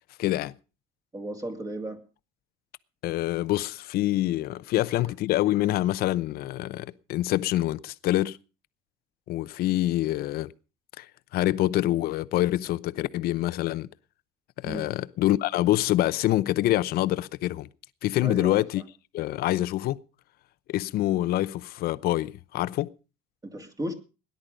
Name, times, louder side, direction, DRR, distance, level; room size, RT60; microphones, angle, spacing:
voice 1, 0.2-0.5 3.0-8.4 9.3-10.5 11.0-11.1 11.3-13.9 14.6-17.7 18.0-18.8 19.1-20.0 20.7-22.9, left 15 dB, 60° left, 0.7 m, -26 dB
voice 2, 1.1-2.0 5.0-5.1 14.6-14.9 18.2-18.6 23.4-23.9, right 1 dB, 20° right, 2.4 m, -35 dB
18.0 x 10.5 x 5.1 m
cardioid pair, 130°, 18 cm